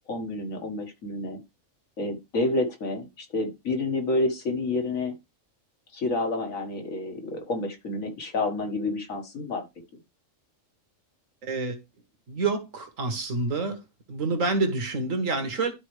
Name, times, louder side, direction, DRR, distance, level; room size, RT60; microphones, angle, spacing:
voice 1, 0.1-1.4 2.0-5.1 5.9-9.6, left 2 dB, 85° left, 2.1 m, -29 dB
voice 2, 11.4-11.8 12.3-13.8 14.1-15.7, right 3 dB, 75° right, 1.9 m, -27 dB
12.5 x 4.4 x 3.3 m
omnidirectional pair, 1.4 m